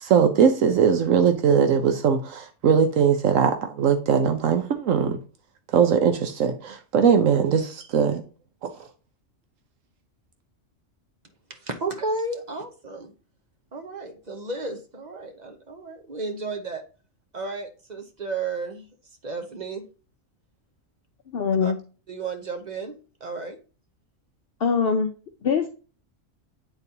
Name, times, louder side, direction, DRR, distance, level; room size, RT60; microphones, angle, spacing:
voice 1, 0.0-5.2 5.7-8.2, right 7 dB, 75° right, 7 dB, 1.1 m, -20 dB
voice 2, 11.5-13.1 13.7-16.8 17.3-18.8 19.2-19.9 21.6-21.7 22.1-23.0 23.2-23.6, right 3 dB, 40° right, 6 dB, 0.8 m, -33 dB
voice 3, 21.3-21.8 24.6-25.1 25.4-25.7, left 6 dB, 55° left, 4 dB, 0.7 m, -22 dB
8.9 x 4.1 x 2.7 m, 0.37 s
omnidirectional pair, 1.4 m